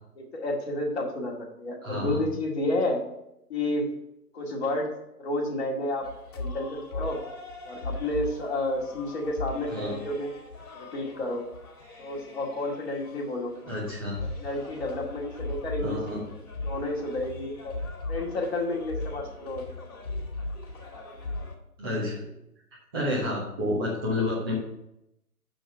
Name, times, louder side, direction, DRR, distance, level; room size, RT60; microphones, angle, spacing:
voice 1, 0.2-3.0 3.5-3.9 4.3-4.9 5.2-6.1 6.3-7.2 7.7-10.3 10.8-11.5 12.0-13.7 14.2-16.0 16.6-17.7 18.1-19.6, left 1 dB, 40° left, -2 dB, 2.1 m, -30 dB
voice 2, 1.8-2.2 9.7-9.9 13.7-14.3 15.8-16.2 21.8-22.3 22.9-24.6, left 1 dB, 15° right, -6 dB, 1.1 m, -30 dB
sound 1, 6.0-21.5, left 2 dB, 65° left, 2.2 m, -38 dB
6.5 x 6.2 x 5.8 m, 0.83 s
figure-of-eight pair, 155°, 47 cm